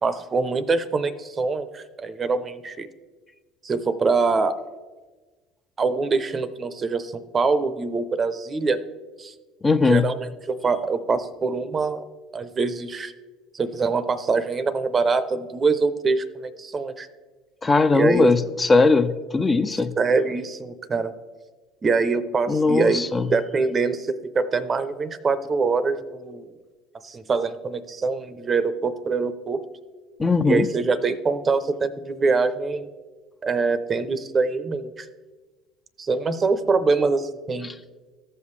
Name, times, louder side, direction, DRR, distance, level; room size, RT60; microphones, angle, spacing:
voice 1, 0.0-2.9 3.6-4.6 5.8-8.8 9.2-9.3 9.8-12.0 12.3-13.1 13.5-17.1 17.9-18.3 20.0-21.1 21.8-23.1 23.3-26.5 27.0-29.6 30.4-32.9 33.4-35.1 36.0-37.7, right 4 dB, 35° right, 13 dB, 0.6 m, -24 dB
voice 2, 9.6-10.1 17.6-20.0 22.5-23.3 30.2-30.7 37.6-37.7, left 3 dB, 25° left, 9 dB, 0.5 m, -19 dB
14.5 x 5.6 x 3.2 m, 1.3 s
hypercardioid pair, 65°, 0 cm